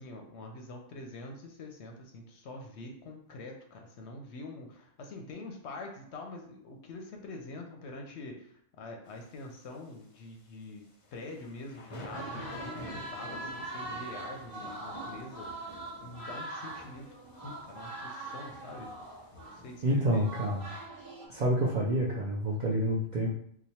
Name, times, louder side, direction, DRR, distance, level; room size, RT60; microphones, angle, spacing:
voice 1, 0.0-10.8 11.1-19.2 19.5-20.3, left 2 dB, 65° left, 2 dB, 0.8 m, -45 dB
sound 1, 11.0-20.6, equal, 40° left, 0.5 m, -48 dB
sound 2, 12.1-19.6 20.2-21.3, right 2 dB, 40° right, 1.0 m, -42 dB
voice 2, 19.8-20.6 21.3-23.3, right 1 dB, 65° right, -3 dB, 0.4 m, -28 dB
3.0 x 2.2 x 4.1 m, 0.68 s
omnidirectional pair, 1.4 m